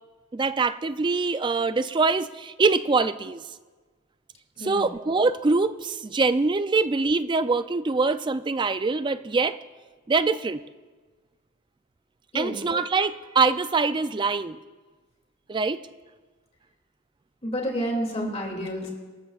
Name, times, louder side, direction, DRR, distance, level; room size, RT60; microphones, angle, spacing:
voice 1, 0.3-3.4 4.6-9.6 10.1-10.6 12.3-14.6 15.5-15.8, right 4 dB, 20° right, 12 dB, 0.3 m, -24 dB
voice 2, 17.4-18.9, equal, 30° left, 0 dB, 2.5 m, -29 dB
26.0 x 13.0 x 2.4 m, 1.3 s
head